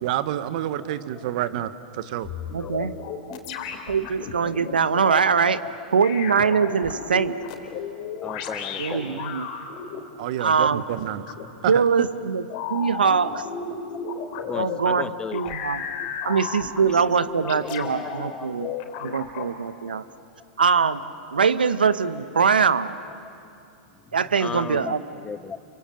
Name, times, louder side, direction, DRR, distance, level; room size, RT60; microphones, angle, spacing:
voice 1, 0.0-2.3 10.2-11.2 11.6-12.1, right 12 dB, 60° right, 13 dB, 1.2 m, -28 dB
sound 1, 2.2-5.2 6.0-10.0 11.3-11.4 12.5-14.8 15.3-17.0 17.5-18.2 18.6-19.5, left 6 dB, 55° left, 3.6 m, -33 dB
voice 2, 2.5-2.9 3.9-5.6 5.9-7.4 8.8-9.5 10.4-10.8 11.7-12.4 12.7-13.5 14.6-15.8 16.2-18.7 19.0-20.1 20.6-21.0 21.3-23.0 24.1-25.0, right 6 dB, 90° right, 14 dB, 0.9 m, -22 dB
voice 3, 8.2-9.3 13.9-14.0 14.4-15.5 16.0-16.3 16.8-19.1 19.9-20.0 23.2-23.3 24.4-24.9 25.2-25.6, left 5 dB, 15° left, 16 dB, 0.6 m, -36 dB
29.5 x 24.5 x 7.6 m, 2.6 s
hypercardioid pair, 105°, 5 cm